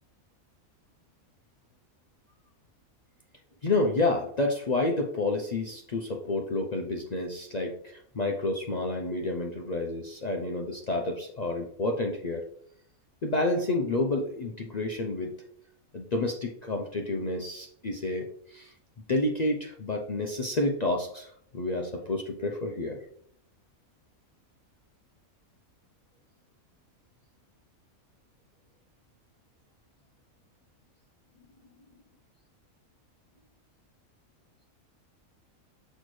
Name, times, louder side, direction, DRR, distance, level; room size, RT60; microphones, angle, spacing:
voice 1, 3.6-12.4 13.2-15.3 15.9-18.7 19.1-23.0, left 2 dB, 60° left, 2 dB, 0.4 m, -29 dB
7.8 x 4.3 x 3.1 m, 0.67 s
omnidirectional pair, 1.5 m